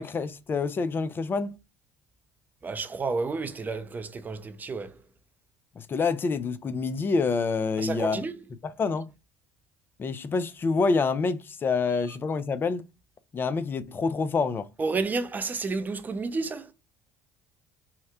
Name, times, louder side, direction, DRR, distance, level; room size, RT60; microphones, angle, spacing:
voice 1, 0.0-1.6 5.8-8.2 8.8-9.1 10.0-12.8 13.3-14.7, left 4 dB, 30° left, 0.4 m, -27 dB
voice 2, 2.6-4.9 7.8-8.4 14.8-16.7, right 4 dB, 25° right, 0.5 m, -31 dB
2.8 x 2.1 x 3.5 m
hypercardioid pair, 75°, 7 cm